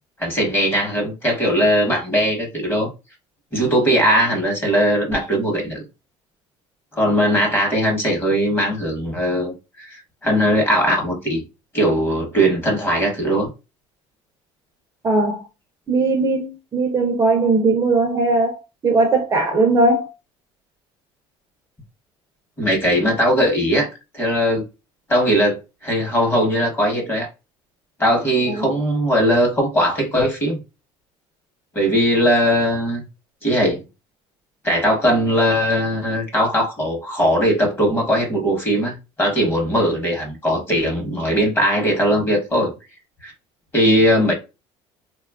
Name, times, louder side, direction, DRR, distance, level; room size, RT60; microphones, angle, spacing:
voice 1, 0.2-2.9 3.5-5.8 6.9-10.0 10.2-11.4 11.7-13.5 22.6-23.9 24.1-24.6 25.1-27.3 28.0-30.6 31.7-33.0 33.4-33.8 34.6-42.7 43.2-43.3 43.7-44.3, equal, 20° left, 0.9 m, -19 dB
voice 2, 15.0-15.4 15.9-18.6 18.8-20.1 28.5-28.7, right 3 dB, 25° right, 0.4 m, -18 dB
3.0 x 2.2 x 2.3 m
cardioid pair, 140°, 11 cm